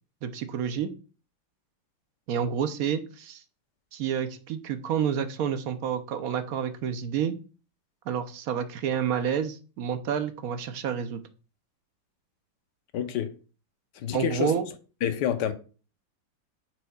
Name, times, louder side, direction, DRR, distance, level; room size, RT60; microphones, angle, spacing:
voice 1, 0.2-0.9 2.3-3.4 3.9-7.3 8.1-11.2 14.1-14.6, right 8 dB, 65° right, 1.0 m, -29 dB
voice 2, 12.9-13.3 13.9-14.5 15.0-15.5, left 9 dB, 70° left, 1.3 m, -28 dB
8.8 x 6.5 x 2.3 m
omnidirectional pair, 2.1 m